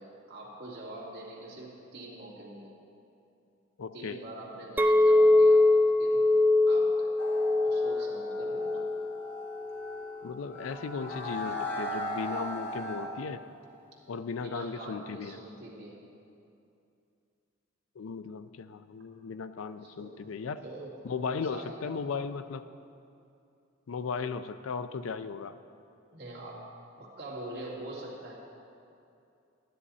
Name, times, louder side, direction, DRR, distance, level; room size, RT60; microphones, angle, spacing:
voice 1, 0.0-2.8 3.9-6.4 6.7-7.1 7.6-8.8 14.4-16.0 19.8-20.9 21.5-21.8 26.1-28.4, right 1 dB, 55° right, -4 dB, 2.3 m, -44 dB
voice 2, 3.8-4.2 10.2-13.4 14.1-15.4 18.0-20.6 21.0-22.6 23.9-25.6, left 5 dB, 80° left, 12 dB, 0.4 m, -36 dB
Chink clink, 4.8-10.0, left 2 dB, 10° right, 0.3 m, -23 dB
sound 1, 7.2-13.1, left 1 dB, 55° left, 1.8 m, -38 dB
12.5 x 10.0 x 4.1 m, 2.6 s
head